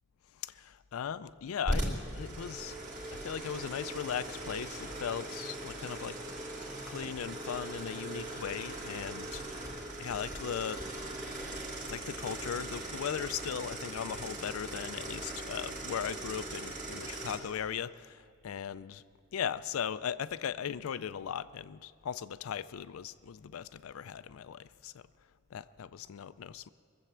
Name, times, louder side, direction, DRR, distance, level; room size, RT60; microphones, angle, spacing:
voice 1, 0.3-2.7 3.1-6.2 6.9-9.4 10.0-10.8 11.8-19.0 19.3-25.0 25.5-26.7, left 8 dB, 80° left, 15 dB, 0.4 m, -38 dB
sound 1, 1.7-17.4, right 1 dB, 40° right, 2.8 m, -39 dB
21.0 x 7.9 x 7.3 m, 2.1 s
head